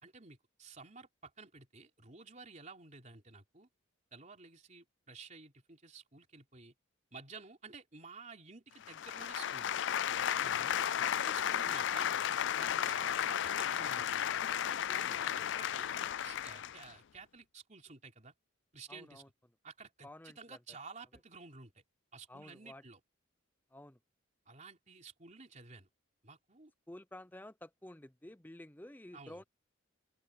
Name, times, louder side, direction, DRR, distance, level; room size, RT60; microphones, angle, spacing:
voice 1, 0.0-3.7 4.1-6.7 7.1-9.7 10.2-12.1 12.6-14.3 14.9-18.3 18.7-19.2 19.6-21.8 22.1-23.0 24.5-25.9 26.2-26.7 29.1-29.4, right 4 dB, 35° right, 3.5 m, -53 dB
sound 1, 8.8-16.9, left 9 dB, 55° left, 0.4 m, -34 dB
voice 2, 10.5-11.0 18.9-19.3 20.0-20.8 22.3-22.8 23.7-24.0 26.9-29.4, left 1 dB, 10° left, 0.7 m, -52 dB
open air
head